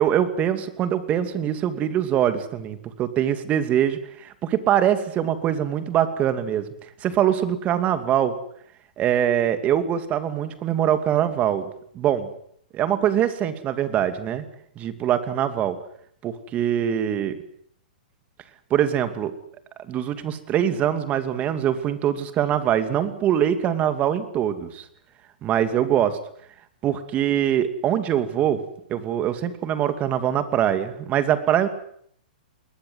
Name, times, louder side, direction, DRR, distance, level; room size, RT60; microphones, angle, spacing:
voice 1, 0.0-6.7 7.0-8.3 9.0-12.3 12.7-14.4 14.8-15.8 16.2-17.3 18.7-19.3 19.9-24.8 25.4-26.2 26.8-28.6 28.9-31.7, right 10 dB, 30° right, 11 dB, 2.5 m, -23 dB
21.5 x 19.0 x 9.5 m, 0.68 s
hypercardioid pair, 125°, 5 cm